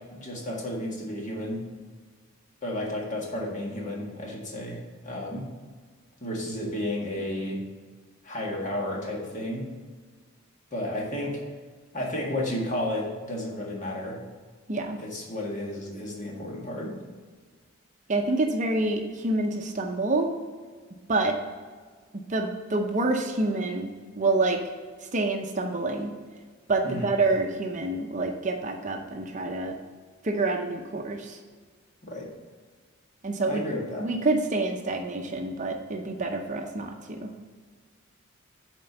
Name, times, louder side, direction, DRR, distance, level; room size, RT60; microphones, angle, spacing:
voice 1, 0.0-1.6 2.6-5.5 6.2-7.6 8.2-9.7 10.7-11.4 11.9-14.2 15.0-17.0 26.8-27.2 32.0-32.3 33.4-34.1, left 1 dB, 35° left, -2 dB, 1.7 m, -32 dB
voice 2, 18.1-20.3 21.1-21.4 22.3-23.9 24.2-24.6 25.1-26.1 26.7-29.8 30.2-31.4 33.2-33.6 34.0-37.3, right 2 dB, 35° right, 4 dB, 0.7 m, -27 dB
7.5 x 4.4 x 6.8 m, 1.5 s
head